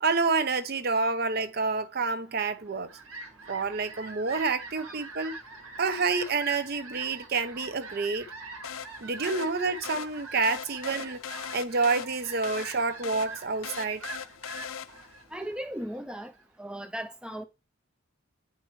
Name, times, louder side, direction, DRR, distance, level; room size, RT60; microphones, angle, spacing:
voice 1, 0.0-2.9 3.5-5.4 5.8-8.3 9.0-11.2 11.5-14.0, right 4 dB, 50° right, 0.6 m, -28 dB
Fowl, 2.5-16.4, right 3 dB, 85° right, 1.5 m, -44 dB
sound 1, 8.6-15.2, left 8 dB, 75° left, 0.5 m, -41 dB
voice 2, 15.3-16.3 16.6-17.4, equal, 5° right, 0.4 m, -36 dB
8.9 x 4.7 x 3.1 m
head